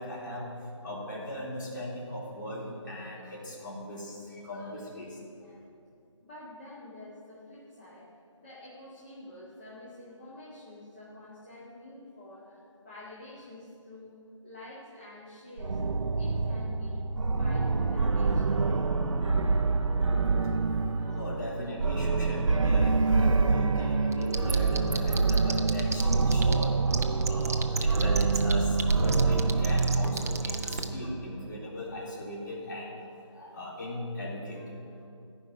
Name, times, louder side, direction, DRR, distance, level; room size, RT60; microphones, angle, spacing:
voice 1, 0.0-5.6 21.0-35.0, left 1 dB, 40° left, -5 dB, 3.8 m, -38 dB
voice 2, 6.2-8.1 8.4-15.9 16.2-17.0 17.3-18.5, left 1 dB, 20° left, -8 dB, 1.9 m, -48 dB
sound 1, 15.6-31.3, right 4 dB, 75° right, 0.7 m, -26 dB
Wind instrument woodwind instrument, 17.4-22.2, right 3 dB, 15° right, 2.1 m, -48 dB
sound 2, 24.1-26.6 26.9-30.8, right 4 dB, 30° right, 0.7 m, -32 dB
14.5 x 5.5 x 9.2 m, 2.5 s
figure-of-eight pair, 170°, 16 cm